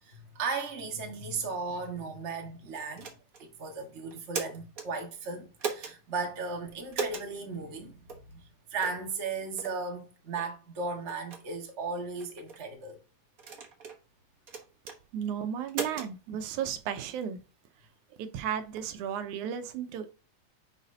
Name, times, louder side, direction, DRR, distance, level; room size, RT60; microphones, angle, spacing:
voice 1, 0.0-3.1 3.4-13.0, right 4 dB, 30° right, 1.4 m, -36 dB
sound 1, 3.0-3.4 4.1-4.9 5.6-5.9 6.9-7.3 8.1-8.2 8.8-9.0 9.6-9.8 10.4-10.5 11.1-11.4 12.2-12.6 13.4-14.0 14.5-15.0 15.7-16.1, right 5 dB, 65° right, 0.8 m, -37 dB
voice 2, 15.1-17.4 18.2-20.1, right 8 dB, 90° right, 2.2 m, -34 dB
9.9 x 4.1 x 2.7 m
omnidirectional pair, 3.3 m